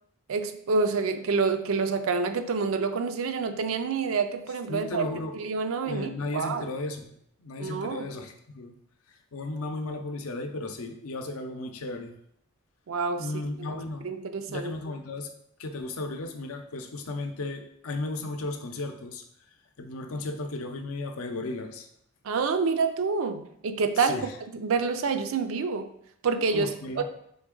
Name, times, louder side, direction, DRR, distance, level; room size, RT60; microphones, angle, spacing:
voice 1, 0.3-5.1 5.3-6.7 7.6-8.1 12.9-13.3 14.0-14.7 22.2-24.2 24.5-25.8 26.2-26.7, right 4 dB, 70° right, 8 dB, 0.4 m, -27 dB
voice 2, 4.7-5.3 5.8-7.1 7.4-8.7 9.3-12.1 13.2-14.1 14.5-15.3 15.6-19.2 19.8-21.9 24.0-24.3 26.5-27.0, left 2 dB, 80° left, 5 dB, 0.6 m, -35 dB
3.9 x 3.4 x 3.7 m, 0.72 s
head